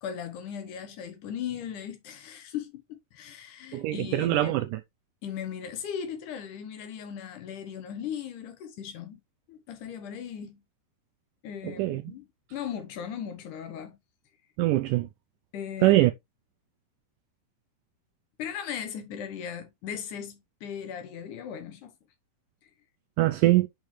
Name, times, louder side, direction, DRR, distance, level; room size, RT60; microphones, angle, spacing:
voice 1, 0.0-4.6 5.2-9.2 9.5-10.6 11.4-14.0 15.5-16.0 18.4-21.9, left 8 dB, 70° left, 2.3 m, -38 dB
voice 2, 3.7-4.7 11.7-12.0 14.6-15.1 15.8-16.1 23.2-23.7, right 16 dB, 85° right, 1.9 m, -22 dB
6.6 x 6.0 x 3.2 m
omnidirectional pair, 4.2 m